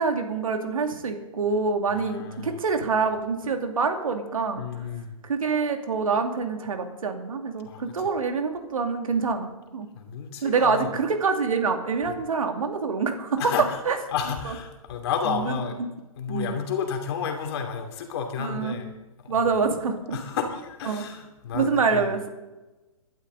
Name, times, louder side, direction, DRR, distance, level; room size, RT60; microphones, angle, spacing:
voice 1, 0.0-4.6 5.2-9.9 10.4-13.4 13.9-14.0 14.5-14.6 15.3-15.9 16.3-16.5 18.4-18.8 19.3-20.2 20.9-21.0 21.5-22.3, right 5 dB, 70° right, 5 dB, 2.4 m, -26 dB
voice 2, 1.9-2.6 4.6-5.2 7.6-7.8 9.9-10.9 13.4-13.8 14.1-15.8 16.2-18.9 19.2-19.5 20.1-22.1, left 7 dB, 45° left, 4 dB, 2.8 m, -31 dB
21.5 x 12.0 x 4.0 m, 1.1 s
figure-of-eight pair, 125°, 18 cm